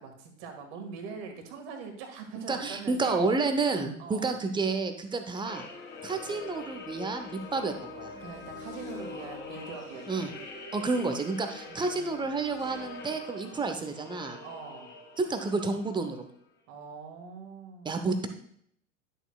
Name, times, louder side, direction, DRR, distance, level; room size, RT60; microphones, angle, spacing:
voice 1, 0.0-3.3 4.0-4.3 8.2-10.4 11.7-12.6 14.4-15.0 16.7-18.1, right 5 dB, 50° right, 4 dB, 1.9 m, -43 dB
voice 2, 2.4-5.7 6.0-8.1 10.1-10.3 10.7-14.4 15.2-16.3 17.8-18.3, right 3 dB, 10° right, 6 dB, 0.8 m, -30 dB
sound 1, 5.5-16.2, left 3 dB, 25° left, 3.3 m, -44 dB
11.0 x 6.8 x 2.3 m, 0.68 s
figure-of-eight pair, 80°, 39 cm